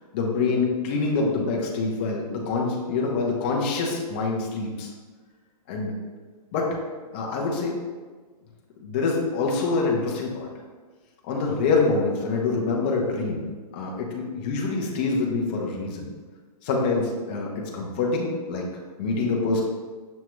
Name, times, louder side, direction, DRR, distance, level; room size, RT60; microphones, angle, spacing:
voice 1, 0.1-4.9 5.7-5.9 6.5-6.7 7.1-7.8 8.8-10.5 11.3-13.5 13.7-16.1 16.6-18.6 19.0-19.6, left 3 dB, 15° left, -2 dB, 0.3 m, -25 dB
6.0 x 2.2 x 2.9 m, 1.4 s
hypercardioid pair, 165°, 20 cm